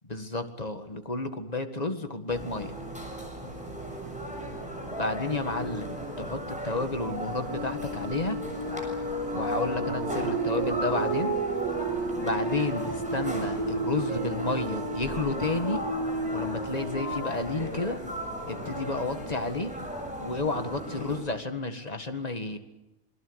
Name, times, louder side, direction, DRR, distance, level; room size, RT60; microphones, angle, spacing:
voice 1, 0.0-2.8 5.0-8.4 9.3-11.4 12.2-15.9 16.3-18.0 18.5-19.8 20.2-22.6, left 2 dB, 25° left, 7 dB, 1.9 m, -31 dB
sound 1, 2.3-21.2, equal, 5° right, 6.7 m, -37 dB
sound 2, 7.5-19.9, right 2 dB, 80° right, 3.0 m, -33 dB
27.5 x 22.5 x 8.1 m, 0.93 s
omnidirectional pair, 1.6 m